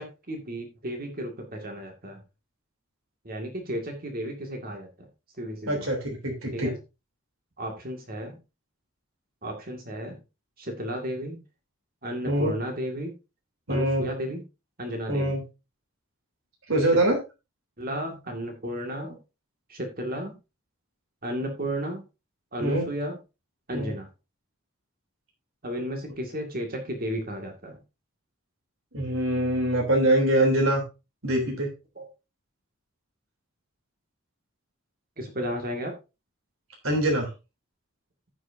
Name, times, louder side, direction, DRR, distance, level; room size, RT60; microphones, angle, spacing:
voice 1, 0.0-2.2 3.2-5.1 5.4-5.9 6.5-6.8 7.6-8.4 9.4-10.2 10.6-11.4 12.0-13.1 13.7-14.4 14.8-15.4 17.8-19.2 19.7-20.4 21.2-22.0 22.5-23.2 23.7-24.1 25.6-27.8 32.0-32.1 35.2-35.9, equal, 45° right, 2 dB, 2.1 m, -33 dB
voice 2, 5.7-6.0 6.2-6.7 12.2-12.5 13.7-14.1 15.1-15.4 16.7-17.2 22.6-22.8 23.7-23.9 28.9-30.8 31.2-31.7 36.8-37.3, right 1 dB, 85° right, 1 dB, 3.3 m, -23 dB
15.0 x 6.3 x 2.7 m, 0.27 s
head